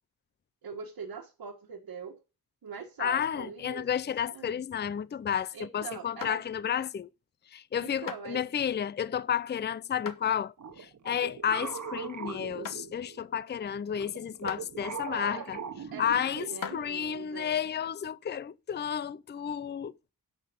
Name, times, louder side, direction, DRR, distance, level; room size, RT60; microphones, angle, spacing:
voice 1, 0.6-2.2 2.6-3.9 4.3-4.6 5.5-6.4 7.8-8.4 15.1-15.5 15.9-17.6, right 6 dB, 80° right, 1.8 m, -42 dB
voice 2, 3.0-7.1 7.5-10.5 10.8-15.6 16.0-16.5 16.7-19.9, left 8 dB, 30° left, 0.4 m, -31 dB
sound 1, 4.4-5.6 6.2-6.8 7.3-7.6 8.1-8.3 9.0-9.4 10.0-10.3 10.7-10.8 11.5-11.6 12.1-12.3 12.6-12.9 13.6-13.7 14.5-14.7 15.5-15.6 16.4-16.8, left 7 dB, 60° left, 1.2 m, -41 dB
sound 2, 10.6-13.3 13.9-16.6, right 6 dB, 50° right, 1.3 m, -40 dB
10.5 x 6.6 x 5.3 m
wide cardioid pair, 120°, 37 cm